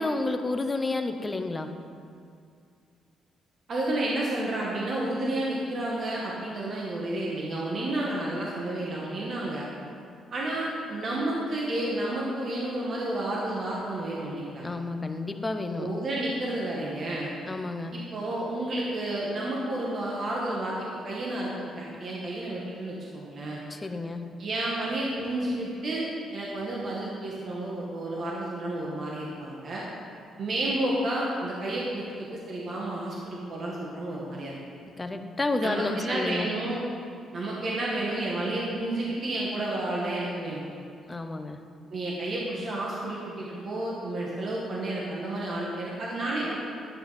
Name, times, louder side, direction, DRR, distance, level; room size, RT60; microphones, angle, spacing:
voice 1, 0.0-1.7 14.6-15.9 17.5-17.9 23.7-24.2 35.0-36.5 41.1-41.6, left 2 dB, 20° left, 7 dB, 0.8 m, -30 dB
voice 2, 3.7-9.7 10.3-14.6 15.7-17.3 17.9-23.6 24.4-26.1 26.3-29.8 30.4-34.5 35.6-36.8 37.3-40.6 41.9-46.6, right 1 dB, 50° right, -4 dB, 1.9 m, -31 dB
11.5 x 9.4 x 4.3 m, 2.3 s
cardioid pair, 90°, 0 cm